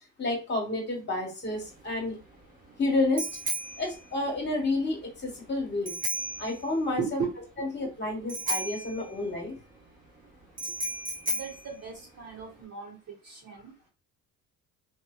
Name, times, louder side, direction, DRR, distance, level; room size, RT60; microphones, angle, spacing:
voice 1, 0.2-2.2 2.8-3.4 3.8-5.9 6.4-7.2 7.6-9.5, left 2 dB, 25° left, 1 dB, 1.4 m, -30 dB
Bicycle bell, 1.5-12.6, right 1 dB, 20° right, 1.2 m, -36 dB
voice 2, 7.0-7.4 11.3-13.0 13.2-13.7, right 6 dB, 40° right, -1 dB, 1.1 m, -36 dB
2.6 x 2.3 x 2.3 m, 0.32 s
hypercardioid pair, 65°, 42 cm